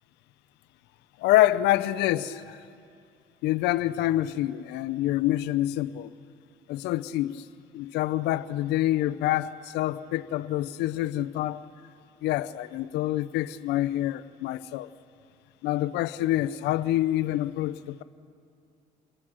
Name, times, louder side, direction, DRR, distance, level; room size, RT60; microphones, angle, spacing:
voice 1, 1.2-2.6 3.4-6.1 6.7-7.4 7.7-11.6 12.2-14.9 15.6-18.0, left 14 dB, 85° left, 0.6 m, -26 dB
28.0 x 21.0 x 6.2 m
cardioid pair, 110°, 17 cm